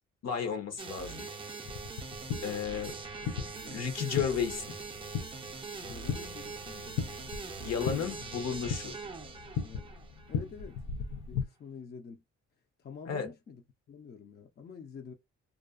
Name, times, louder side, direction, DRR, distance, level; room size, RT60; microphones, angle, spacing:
voice 1, 0.2-1.3 2.4-3.0 3.7-4.6 7.6-8.9 13.1-13.3, left 7 dB, 60° left, 0.8 m, -33 dB
sound 1, 0.8-10.4, right 4 dB, 15° right, 0.5 m, -42 dB
sound 2, 1.7-11.5, left 7 dB, 80° left, 0.5 m, -38 dB
voice 2, 2.3-2.9 3.2-3.9 5.8-8.2 9.6-10.0 10.3-10.8 11.3-12.2 12.8-15.1, left 6 dB, 35° left, 0.5 m, -48 dB
2.4 x 2.2 x 2.3 m
cardioid pair, 90°, 30 cm